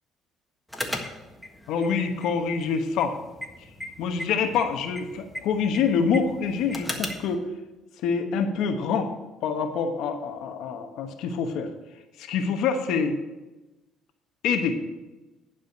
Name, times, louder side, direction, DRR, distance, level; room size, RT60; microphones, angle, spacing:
sound 1, 0.7-7.3, left 1 dB, ahead, 1.5 m, -38 dB
voice 1, 1.7-3.1 4.0-7.5 8.0-9.1 9.4-11.7 12.2-13.1 14.4-14.7, left 6 dB, 80° left, 5 dB, 1.1 m, -26 dB
11.0 x 5.0 x 6.9 m, 1.1 s
cardioid pair, 100°, 0 cm